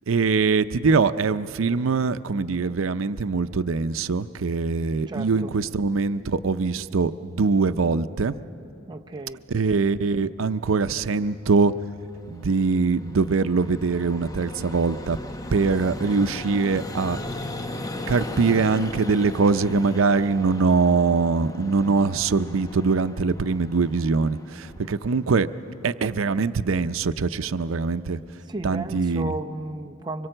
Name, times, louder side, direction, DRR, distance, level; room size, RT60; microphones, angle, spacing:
voice 1, 0.1-8.4 9.5-11.7 12.3-15.2 15.5-17.2 18.1-25.5 25.8-28.2 28.6-29.3, right 4 dB, 90° right, 12 dB, 0.6 m, -23 dB
voice 2, 5.1-5.5 8.9-9.4 28.5-30.3, right 2 dB, 20° right, 4 dB, 0.6 m, -33 dB
Vehicle, 11.2-25.8, left 1 dB, 20° left, 0.8 m, -38 dB
25.0 x 22.0 x 7.8 m, 2.7 s
head